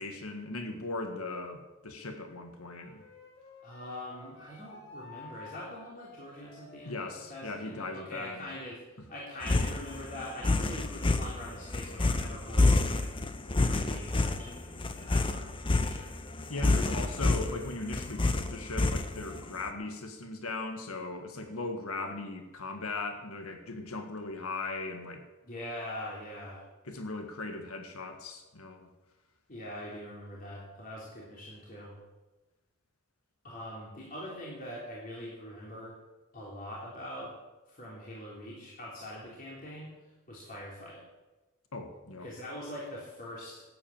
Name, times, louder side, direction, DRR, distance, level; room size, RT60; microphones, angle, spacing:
voice 1, 0.0-3.0 6.8-8.5 16.5-25.2 26.9-28.9 41.7-42.3, left 3 dB, 85° left, 5 dB, 1.7 m, -38 dB
Wind instrument woodwind instrument, 2.6-7.9, left 3 dB, 70° left, 4.9 m, -52 dB
voice 2, 3.6-13.1 13.6-16.2 25.4-26.6 29.5-32.0 33.4-36.0 36.3-37.3 37.7-41.0 42.2-43.6, left 1 dB, 45° left, -6 dB, 3.5 m, -43 dB
sound 1, 9.4-19.4, left 2 dB, 25° left, 0.8 m, -28 dB
12.5 x 8.8 x 8.8 m, 1.1 s
head